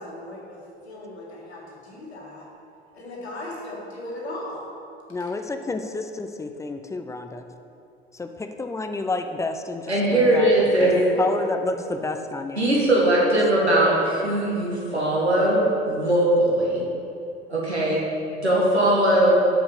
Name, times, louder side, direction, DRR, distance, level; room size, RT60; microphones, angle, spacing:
voice 1, 0.0-2.5 2.9-4.6 5.2-5.3 11.0-11.4, left 1 dB, 75° left, -3 dB, 1.7 m, -37 dB
voice 2, 5.1-7.4 8.1-10.9 11.2-12.6, left 3 dB, 10° left, 7 dB, 0.4 m, -30 dB
voice 3, 9.9-11.0 12.6-16.8 17.5-18.0 18.4-19.4, right 1 dB, 90° right, -5 dB, 1.6 m, -20 dB
6.6 x 5.6 x 6.7 m, 2.6 s
figure-of-eight pair, 65°, 32 cm